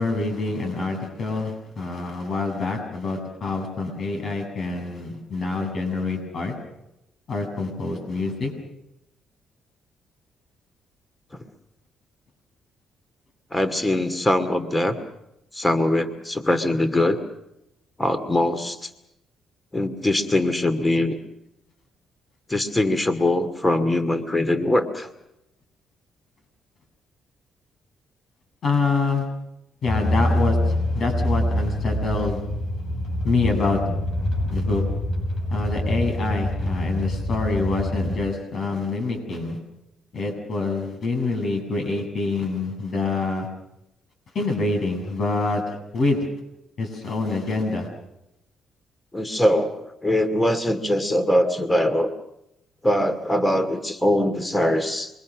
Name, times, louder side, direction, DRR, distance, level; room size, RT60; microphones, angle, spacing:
voice 1, 0.0-6.5 7.3-8.5 28.6-29.2 29.8-30.6 30.9-32.4 33.2-33.8 34.5-34.8 35.5-39.6 40.1-43.5 44.3-46.3 46.8-47.9, left 3 dB, 55° left, 4 dB, 7.6 m, -26 dB
voice 2, 13.5-15.0 15.5-17.2 18.0-18.9 19.7-21.2 22.5-25.1 49.1-52.1 52.8-55.1, left 1 dB, 15° left, 10 dB, 2.5 m, -22 dB
sound 1, 29.9-38.1, left 1 dB, 75° left, 6.9 m, -25 dB
28.0 x 23.0 x 6.4 m, 0.85 s
cardioid pair, 90°, 0 cm